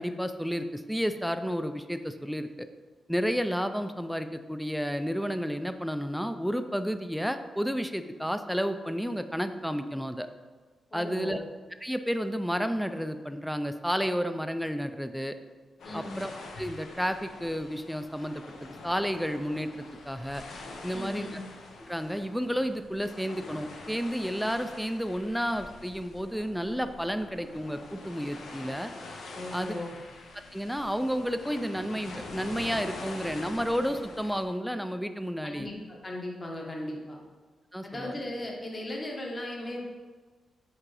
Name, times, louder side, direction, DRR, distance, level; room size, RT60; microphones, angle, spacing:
voice 1, 0.0-2.7 3.1-10.3 10.9-11.4 11.8-15.4 15.9-16.3 16.6-20.4 20.8-21.3 21.9-28.9 29.5-29.7 30.4-35.7 37.7-38.1, equal, ahead, 9 dB, 0.4 m, -31 dB
voice 2, 10.9-11.4 15.8-16.2 20.9-21.4 29.3-29.9 35.4-37.2 37.8-39.8, left 1 dB, 25° left, -1 dB, 1.1 m, -37 dB
sound 1, 15.8-34.4, left 2 dB, 70° left, 0.9 m, -45 dB
7.5 x 3.7 x 4.8 m, 1.4 s
cardioid pair, 120°, 0 cm